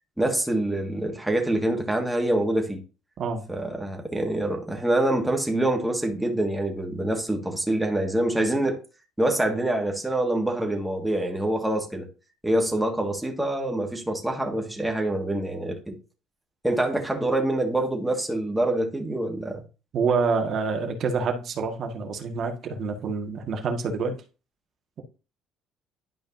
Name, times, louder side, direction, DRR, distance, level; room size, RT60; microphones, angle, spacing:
voice 1, 0.2-2.8 3.5-8.8 9.2-12.1 12.4-16.0 16.6-19.6, right 1 dB, 5° right, 1.9 m, -25 dB
voice 2, 19.9-24.2, right 4 dB, 55° right, 1.7 m, -27 dB
11.0 x 5.2 x 2.7 m
cardioid pair, 115°, 0 cm